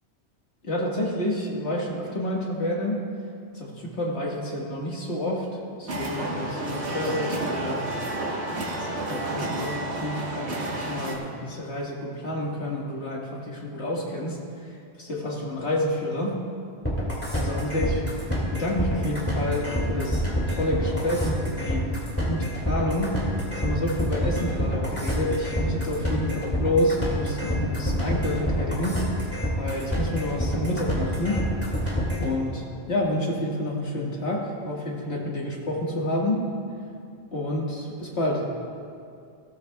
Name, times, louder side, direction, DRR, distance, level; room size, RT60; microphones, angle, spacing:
voice 1, 0.6-3.0 3.5-5.5 5.8-7.9 8.8-16.4 17.3-18.0 18.5-31.4 32.2-36.4 37.3-38.5, left 1 dB, 75° left, -3 dB, 2.1 m, -29 dB
sound 1, 5.9-11.2, right 2 dB, 90° right, 1.7 m, -30 dB
sound 2, 16.8-32.3, equal, 10° left, 2.4 m, -27 dB
16.5 x 13.5 x 2.3 m, 2.4 s
omnidirectional pair, 1.1 m